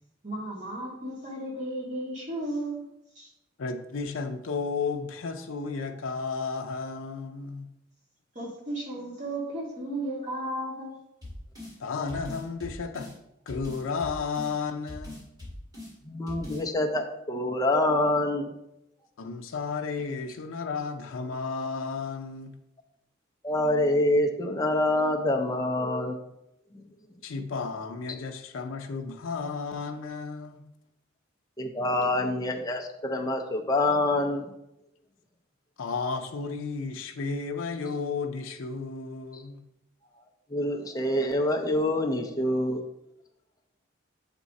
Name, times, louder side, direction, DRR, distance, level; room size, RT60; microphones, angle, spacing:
voice 1, 0.2-2.8 3.1-3.3 8.3-10.9, right 1 dB, 40° right, 1.7 m, -34 dB
voice 2, 3.6-7.7 11.8-13.1 13.5-15.2 19.2-22.5 27.2-30.6 35.8-39.6, left 4 dB, 85° left, 0.5 m, -33 dB
sound 1, 11.2-11.7 12.1-13.1 13.5-14.5 14.9-15.9 16.3-16.6, left 1 dB, 20° right, 2.2 m, -41 dB
voice 3, 16.1-18.5 23.4-26.2 31.6-34.5 39.3-39.4 40.5-42.8, left 1 dB, 20° left, 0.5 m, -26 dB
7.1 x 3.7 x 4.1 m
head